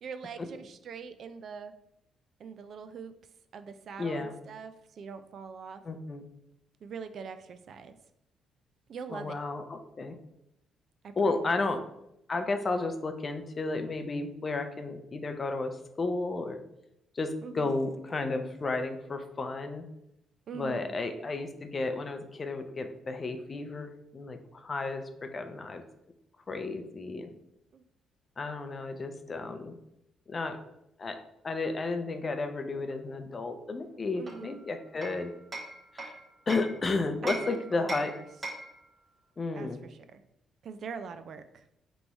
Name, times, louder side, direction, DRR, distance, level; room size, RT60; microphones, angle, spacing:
voice 1, 0.0-1.7 2.4-3.1 3.5-5.8 6.8-8.0 8.9-9.4 11.0-11.5 17.4-17.7 20.5-21.0 27.7-27.8 34.1-34.6 37.2-38.3 39.5-40.2 40.6-41.6, right 6 dB, 60° right, 10 dB, 0.3 m, -43 dB
voice 2, 4.0-4.3 5.8-6.2 9.1-10.2 11.2-11.8 12.3-16.6 17.1-19.8 20.5-25.8 26.5-27.3 28.4-29.8 30.3-30.6 31.0-31.2 31.4-35.3 35.9-36.1 36.5-38.1 39.4-39.8, left 3 dB, 35° left, 7 dB, 0.5 m, -33 dB
Hammer, 34.3-36.8 37.3-38.8, right 2 dB, 25° right, 0.8 m, -40 dB
3.4 x 3.0 x 4.0 m, 0.82 s
cardioid pair, 90°, 0 cm